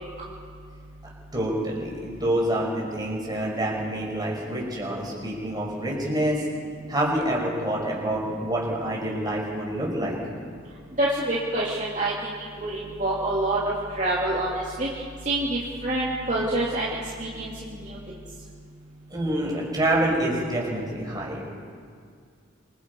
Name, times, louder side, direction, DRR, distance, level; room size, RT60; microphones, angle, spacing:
voice 1, 1.3-6.5 6.9-10.2 19.1-21.5, right 1 dB, 20° right, -2 dB, 5.7 m, -27 dB
voice 2, 11.0-13.6 13.9-14.9 15.2-16.9 17.2-18.0, right 1 dB, 35° right, -6 dB, 3.0 m, -27 dB
27.0 x 23.5 x 5.5 m, 2.2 s
head